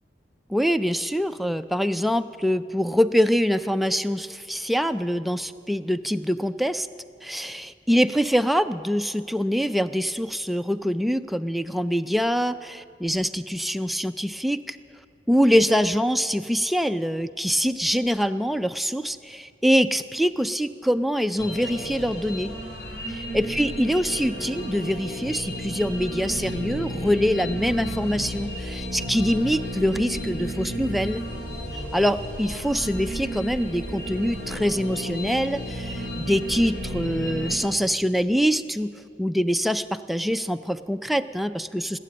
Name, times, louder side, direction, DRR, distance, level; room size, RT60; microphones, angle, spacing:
voice 1, 0.5-6.9 7.2-14.8 15.3-22.5 23.1-31.2 31.9-38.9 39.2-42.0, equal, ahead, 10 dB, 0.3 m, -24 dB
sound 1, 21.4-37.6, equal, 60° left, 3.6 m, -33 dB
19.5 x 8.5 x 8.6 m, 2.2 s
head